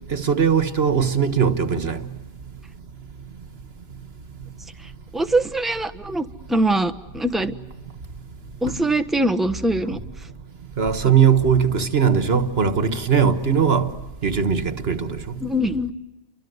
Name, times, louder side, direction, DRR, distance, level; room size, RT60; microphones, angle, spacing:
voice 1, 0.1-2.0 10.8-13.9 14.2-15.4, right 7 dB, 65° right, 1.6 m, -19 dB
voice 2, 5.1-7.6 8.6-10.0 15.4-15.9, right 1 dB, ahead, 1.1 m, -22 dB
30.0 x 24.5 x 8.0 m
omnidirectional pair, 1.1 m